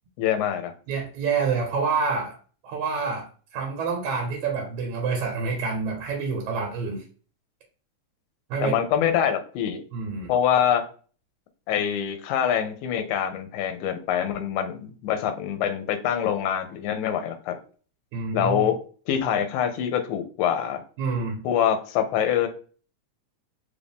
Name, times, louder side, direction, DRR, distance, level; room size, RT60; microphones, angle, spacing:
voice 1, 0.2-0.7 8.6-9.8 10.3-10.8 11.7-17.6 18.3-18.8 19.1-20.8 21.4-22.5, left 9 dB, 80° left, 8 dB, 2.0 m, -25 dB
voice 2, 0.9-2.4 2.6-3.3 3.5-7.0 8.5-8.8 9.9-10.3 18.1-18.7 21.0-21.4, right 5 dB, 75° right, 0 dB, 2.2 m, -27 dB
4.8 x 2.6 x 3.4 m, 0.40 s
omnidirectional pair, 3.4 m